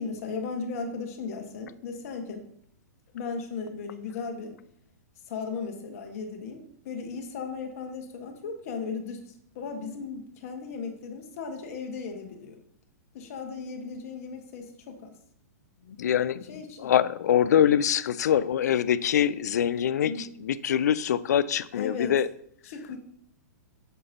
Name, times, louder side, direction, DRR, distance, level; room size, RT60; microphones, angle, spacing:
voice 1, 0.0-2.4 3.1-4.5 5.3-12.6 13.1-15.1 16.5-16.9 20.0-20.3 21.7-22.1 22.6-23.0, left 5 dB, 55° left, 4 dB, 1.6 m, -36 dB
voice 2, 16.0-22.3, left 9 dB, 70° left, 17 dB, 0.4 m, -24 dB
8.4 x 6.8 x 2.9 m, 0.68 s
hypercardioid pair, 115°, 9 cm